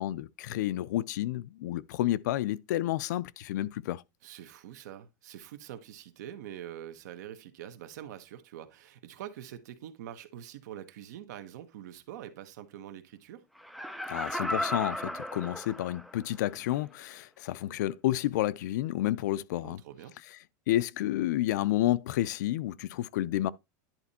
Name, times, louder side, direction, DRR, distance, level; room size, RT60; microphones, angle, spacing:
voice 1, 0.0-4.0 14.1-19.8 20.7-23.5, left 14 dB, 70° left, 0.5 m, -30 dB
voice 2, 4.2-13.4 19.6-20.1, right 11 dB, 65° right, 1.3 m, -45 dB
Laughter, 13.6-16.2 16.7-16.8, left 1 dB, ahead, 0.4 m, -35 dB
10.5 x 4.3 x 4.2 m
supercardioid pair, 175°, 10 cm